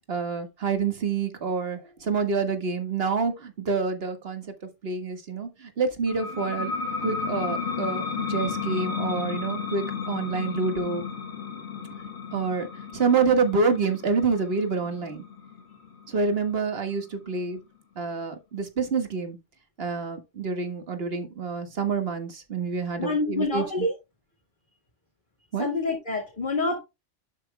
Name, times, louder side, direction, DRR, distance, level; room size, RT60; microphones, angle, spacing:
voice 1, 0.1-4.5 4.8-11.0 12.3-12.7 12.9-15.2 16.1-17.6 18.0-19.4 19.8-23.9 25.5-25.7, right 4 dB, 55° right, 1.8 m, -27 dB
sound 1, 6.1-17.3, left 5 dB, 65° left, 1.6 m, -33 dB
voice 2, 23.0-23.9 25.6-26.8, left 2 dB, 45° left, 2.0 m, -27 dB
12.0 x 6.1 x 2.2 m
omnidirectional pair, 1.2 m